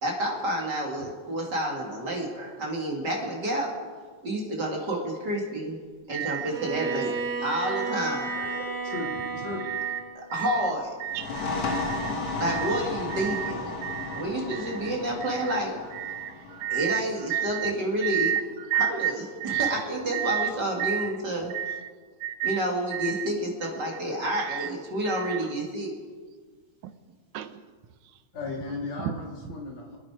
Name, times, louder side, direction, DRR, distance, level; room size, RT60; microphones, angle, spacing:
voice 1, 0.0-3.7 4.2-5.8 6.1-7.1 7.4-8.9 10.3-10.9 12.4-13.8 14.1-15.8 16.7-18.3 18.7-21.5 22.4-26.0, right 1 dB, 35° right, -1 dB, 2.6 m, -29 dB
voice 2, 6.1-6.5 6.8-7.2 7.6-7.9 8.2-8.6 8.9-9.3 9.7-10.0 10.3-10.7 11.0-11.4 11.7-12.2 12.4-12.8 13.1-13.5 13.8-14.2 14.5-14.9 15.2-15.6 15.9-17.0 17.3-17.7 18.0-18.4 18.7-19.1 19.4-19.8 20.1-20.5 20.8-21.1 21.5-21.9 22.2-22.6 22.9-23.3 24.3-24.7 25.1-25.4 26.8-26.9 27.3-27.6 29.0-29.2, right 11 dB, 80° right, 11 dB, 2.1 m, -31 dB
Bowed string instrument, 6.4-10.2, right 3 dB, 55° right, 3.1 m, -33 dB
voice 3, 8.8-9.8 28.3-30.0, left 3 dB, 65° left, 0 dB, 3.3 m, -36 dB
sound 1, 11.0-18.4, left 3 dB, 45° left, 2.3 m, -34 dB
26.0 x 9.6 x 4.9 m, 1.5 s
omnidirectional pair, 3.3 m